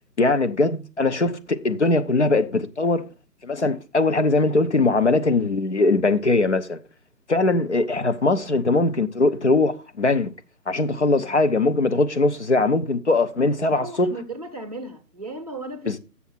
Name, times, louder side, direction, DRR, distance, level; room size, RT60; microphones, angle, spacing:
voice 1, 0.2-1.4 1.6-3.1 3.4-6.8 7.3-10.3 10.7-14.1 15.9-16.0, left 3 dB, 45° left, 0.7 m, -21 dB
voice 2, 13.1-15.9, right 2 dB, 25° right, 0.8 m, -36 dB
7.3 x 7.1 x 4.3 m
figure-of-eight pair, 150°, 49 cm